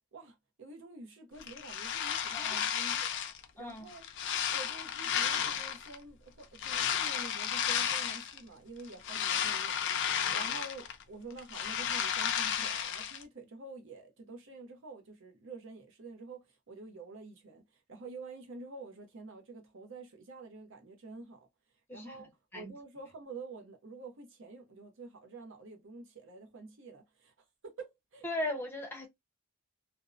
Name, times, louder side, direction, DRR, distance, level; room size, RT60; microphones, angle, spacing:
voice 1, 0.1-3.1 3.6-4.0 4.5-21.5 21.9-27.3 27.6-28.2, right 3 dB, 60° right, 0.7 m, -48 dB
sound 1, 1.4-3.4 3.9-6.0 6.6-8.4 8.8-11.0 11.3-13.2, left 9 dB, 55° left, 0.4 m, -33 dB
voice 2, 2.3-2.7 3.6-3.8 21.9-22.2 22.5-22.7 28.2-29.1, left 1 dB, 10° left, 0.6 m, -38 dB
2.6 x 2.0 x 2.4 m
head